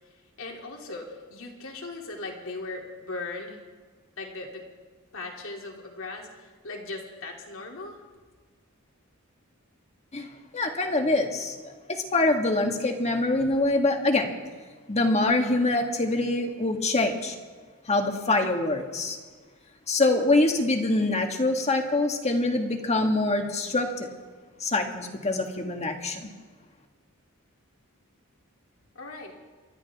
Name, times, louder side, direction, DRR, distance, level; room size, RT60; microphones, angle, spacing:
voice 1, 0.4-3.6 4.2-4.7 5.1-8.0 28.9-29.3, left 3 dB, 65° left, 0 dB, 2.9 m, -38 dB
voice 2, 10.5-11.6 11.9-14.3 14.9-17.4 17.9-19.2 19.9-24.1 24.6-26.3, left 2 dB, 30° left, 4 dB, 1.7 m, -24 dB
30.0 x 13.0 x 3.6 m, 1.5 s
head